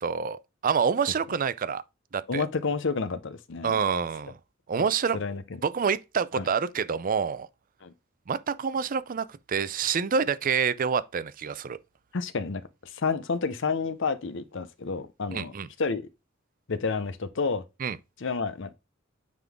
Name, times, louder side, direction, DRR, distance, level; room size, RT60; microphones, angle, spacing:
voice 1, 0.0-1.8 2.1-2.4 3.6-4.4 4.7-5.2 5.6-7.5 8.3-11.8 15.3-15.7 17.8-18.0, right 6 dB, 45° right, 0.4 m, -27 dB
voice 2, 2.3-3.8 5.1-5.6 6.3-6.5 7.8-7.9 12.1-15.5 15.8-16.1 16.7-17.6 18.2-18.7, left 4 dB, 65° left, 0.7 m, -30 dB
9.3 x 3.8 x 3.5 m
head